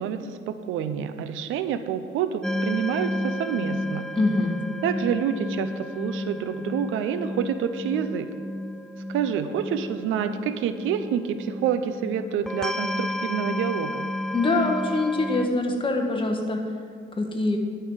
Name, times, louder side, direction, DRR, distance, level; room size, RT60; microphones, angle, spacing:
voice 1, 0.0-4.1 4.8-8.3 9.1-14.1, right 8 dB, 85° right, 10 dB, 0.6 m, -28 dB
sound 1, 2.4-15.5, left 1 dB, 5° left, 0.3 m, -32 dB
voice 2, 4.2-4.6 14.3-16.8 17.1-17.6, left 2 dB, 25° left, 2 dB, 1.4 m, -24 dB
10.5 x 5.6 x 6.3 m, 2.1 s
cardioid pair, 90°, 20 cm